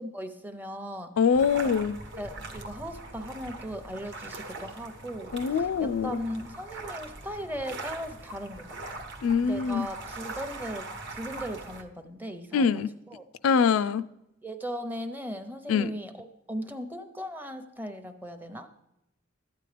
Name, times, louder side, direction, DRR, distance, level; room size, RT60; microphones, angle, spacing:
voice 1, 0.0-1.1 2.2-8.7 9.4-12.8 13.1-13.2 14.4-18.7, equal, 10° right, 0.7 m, -38 dB
voice 2, 1.2-2.0 5.3-6.2 9.2-9.9 12.5-12.9 13.4-14.0 15.7-15.9, left 6 dB, 85° left, 0.4 m, -24 dB
sound 1, 1.3-11.8, right 2 dB, 60° right, 1.0 m, -41 dB
12.5 x 9.1 x 3.3 m
head